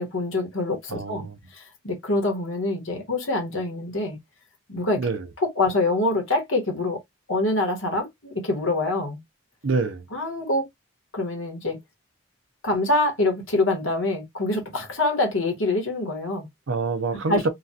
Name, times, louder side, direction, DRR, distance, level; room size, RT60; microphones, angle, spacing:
voice 1, 0.0-1.3 1.5-4.2 4.7-5.0 5.4-7.0 7.3-9.2 10.1-10.6 11.1-11.8 12.6-16.5 17.3-17.4, left 2 dB, 70° left, 1.4 m, -25 dB
voice 2, 0.9-1.4 5.0-5.3 9.6-10.1 16.7-17.5, right 3 dB, 70° right, 0.6 m, -26 dB
3.0 x 2.4 x 2.7 m
head